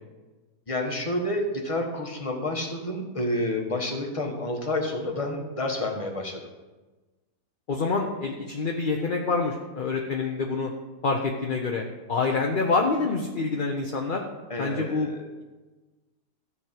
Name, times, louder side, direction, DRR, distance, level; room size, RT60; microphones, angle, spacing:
voice 1, 0.7-6.4 14.5-15.3, left 1 dB, 20° left, 2 dB, 1.4 m, -29 dB
voice 2, 7.7-10.7 11.0-11.8 12.1-14.2 14.6-15.1, left 4 dB, 40° left, 1 dB, 0.8 m, -26 dB
14.0 x 4.8 x 7.5 m, 1.2 s
omnidirectional pair, 1.7 m